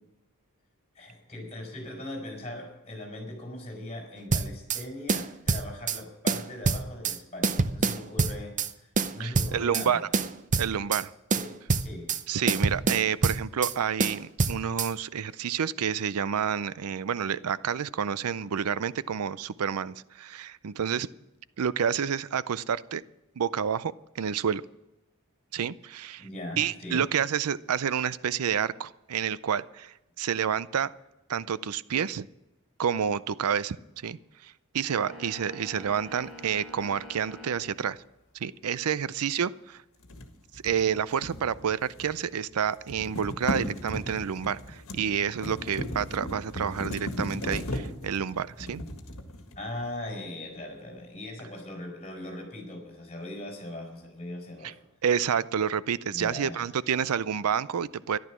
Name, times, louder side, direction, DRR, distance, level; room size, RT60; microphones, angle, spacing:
voice 1, 0.9-8.6 9.1-10.0 11.3-12.1 26.2-27.1 49.6-54.8 56.1-56.6, left 1 dB, 30° left, 2 dB, 4.7 m, -39 dB
sound 1, 4.3-4.8 5.1-6.0 6.3-7.2 7.4-8.7 9.0-9.9 10.1-11.0 11.3-12.2 12.5-13.7 14.0-14.9, right 4 dB, 35° right, 0.6 m, -26 dB
voice 2, 9.2-10.1 10.6-11.1 12.3-21.1 21.6-23.0 23.4-24.6 25.5-26.3 26.6-30.9 31.3-32.3 32.8-33.8 34.0-38.0 38.3-39.8 40.5-48.8 54.6-54.7 55.0-58.2, right 7 dB, 85° right, 18 dB, 0.5 m, -29 dB
sound 2, 34.9-37.7, equal, ahead, 5.8 m, -45 dB
sound 3, 40.0-42.3 42.5-49.8, left 1 dB, 65° left, 1.9 m, -37 dB
14.0 x 11.5 x 6.2 m, 0.92 s
head